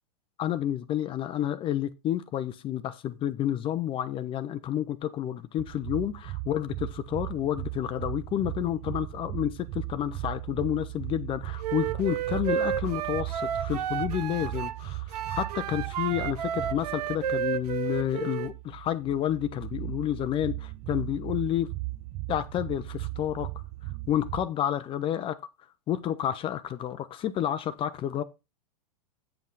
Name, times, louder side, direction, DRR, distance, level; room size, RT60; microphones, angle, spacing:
voice 1, 0.4-21.7 22.3-23.5 24.1-25.4 25.9-28.2, left 11 dB, 25° left, 0.6 m, -30 dB
sound 1, 5.6-24.5, right 18 dB, 35° right, 0.6 m, -37 dB
Wind instrument woodwind instrument, 11.6-14.8 15.1-18.5, right 9 dB, 75° right, 0.7 m, -31 dB
9.0 x 5.5 x 3.9 m
hypercardioid pair, 125°, 20 cm